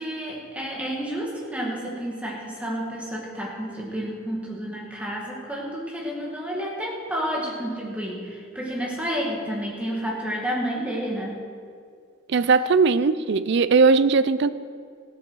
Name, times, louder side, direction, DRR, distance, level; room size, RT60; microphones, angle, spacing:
voice 1, 0.0-11.4, equal, 5° right, -3 dB, 2.1 m, -30 dB
voice 2, 12.3-14.5, right 4 dB, 55° right, 15 dB, 0.4 m, -19 dB
14.5 x 8.9 x 6.3 m, 2.2 s
head